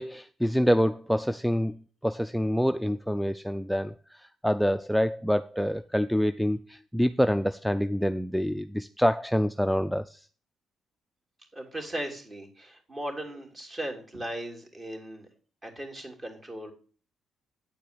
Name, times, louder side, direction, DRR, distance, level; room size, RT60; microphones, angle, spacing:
voice 1, 0.0-10.2, equal, ahead, 0.4 m, -26 dB
voice 2, 11.5-15.3 15.6-16.7, right 1 dB, 30° right, 3.0 m, -37 dB
9.3 x 4.6 x 6.8 m
cardioid pair, 90°, 0 cm